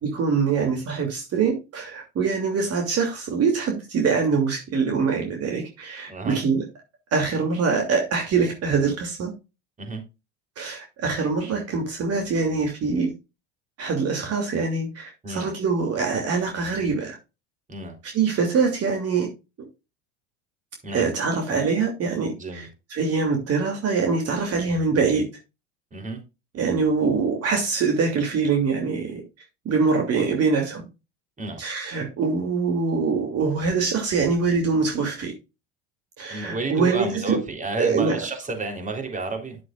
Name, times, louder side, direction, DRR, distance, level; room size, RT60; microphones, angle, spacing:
voice 1, 0.0-6.6 7.1-9.3 10.6-13.1 13.8-17.2 18.0-19.3 20.9-25.3 26.5-29.2 29.6-30.9 31.6-35.3 36.2-37.4 37.8-38.2, right 5 dB, 45° right, 2.9 m, -24 dB
voice 2, 6.1-6.4 9.8-10.0 15.2-15.5 17.7-17.9 20.8-21.0 22.4-22.7 25.9-26.2 31.4-31.6 36.3-39.6, right 2 dB, 20° right, 3.6 m, -31 dB
10.5 x 7.7 x 2.5 m
hypercardioid pair, 85°, 35 cm